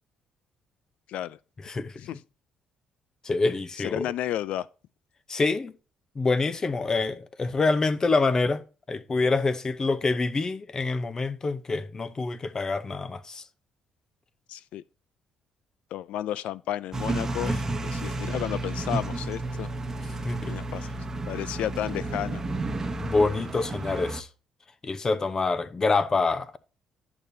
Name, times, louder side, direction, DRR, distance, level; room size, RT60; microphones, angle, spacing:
voice 1, 1.6-2.0 3.2-4.1 5.3-5.7 6.2-8.6 8.9-13.4 17.5-17.6 18.1-18.2 20.2-20.5 23.0-24.3 24.8-26.6, left 3 dB, 30° left, 0.8 m, -26 dB
voice 2, 3.8-4.7 14.5-14.8 15.9-17.5 17.8-19.7 20.5-20.9 21.3-22.4, left 12 dB, 75° left, 0.3 m, -32 dB
sound 1, 16.9-24.2, right 2 dB, 25° right, 0.9 m, -32 dB
10.5 x 6.8 x 2.7 m
cardioid pair, 95°, 2 cm